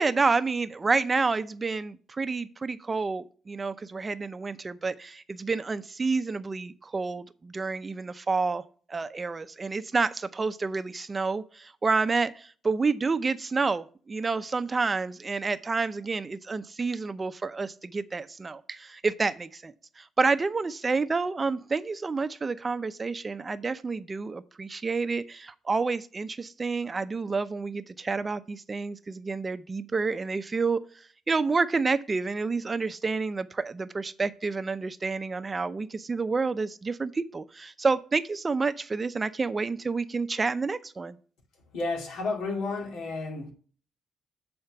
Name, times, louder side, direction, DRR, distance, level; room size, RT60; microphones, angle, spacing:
voice 1, 0.0-8.6 8.9-30.8 31.3-41.2, right 4 dB, 30° right, 0.5 m, -29 dB
voice 2, 41.7-43.5, left 3 dB, 85° left, 2.2 m, -31 dB
8.1 x 4.3 x 5.7 m
cardioid pair, 90°, 0 cm